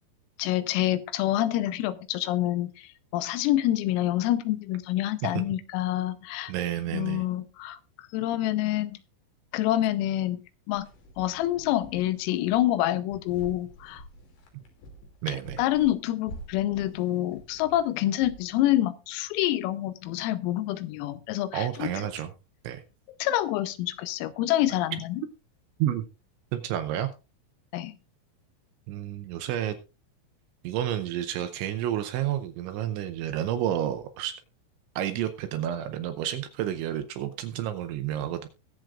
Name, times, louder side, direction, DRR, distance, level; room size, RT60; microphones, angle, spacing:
voice 1, 0.4-2.9 3.1-6.5 6.9-7.8 8.1-9.0 9.5-10.4 10.7-10.9 11.2-14.0 15.3-21.9 23.2-25.2 27.7-28.0, left 14 dB, 85° left, 13 dB, 3.5 m, -27 dB
voice 2, 6.5-7.2 15.2-15.6 21.5-22.3 22.6-22.8 25.8-26.1 26.5-27.1 28.9-29.8 30.6-34.4 35.0-38.5, right 11 dB, 80° right, 9 dB, 2.8 m, -30 dB
sound 1, 10.7-18.7, equal, 65° left, 4.6 m, -48 dB
21.5 x 7.7 x 2.4 m, 0.29 s
omnidirectional pair, 6.0 m